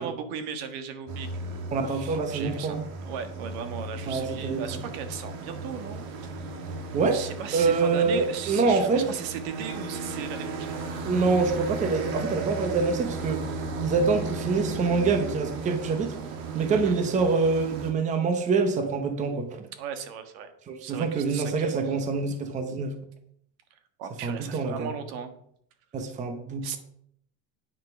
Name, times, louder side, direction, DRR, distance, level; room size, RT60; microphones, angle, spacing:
voice 1, 0.0-6.4 7.1-10.8 16.6-17.0 19.7-20.5 20.8-21.8 24.0-25.3 26.6-26.8, right 7 dB, 70° right, 9 dB, 1.6 m, -37 dB
sound 1, 1.1-17.9, right 3 dB, 85° right, 2.4 m, -35 dB
voice 2, 1.7-2.8 4.1-4.8 6.9-7.2 7.5-9.1 11.1-13.4 13.8-16.2 16.5-19.6 20.7-22.9 24.2-24.9 25.9-26.8, right 4 dB, 20° right, 7 dB, 0.9 m, -25 dB
9.3 x 6.5 x 5.8 m, 0.68 s
cardioid pair, 170°, 34 cm